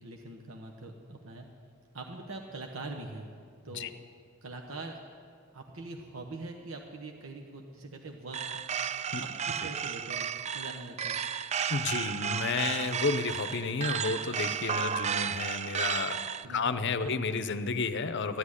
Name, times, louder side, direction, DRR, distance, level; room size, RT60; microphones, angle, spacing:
voice 1, 0.0-1.5 1.9-3.3 3.6-3.9 4.4-5.0 5.5-8.6 9.2-11.2 16.4-17.3, right 2 dB, 65° right, 2 dB, 1.1 m, -43 dB
sound 1, 8.3-16.5, right 7 dB, 30° right, 0.3 m, -33 dB
voice 2, 11.7-16.2 16.5-18.4, left 4 dB, 55° left, 11 dB, 0.7 m, -31 dB
14.5 x 8.7 x 9.8 m, 2.3 s
head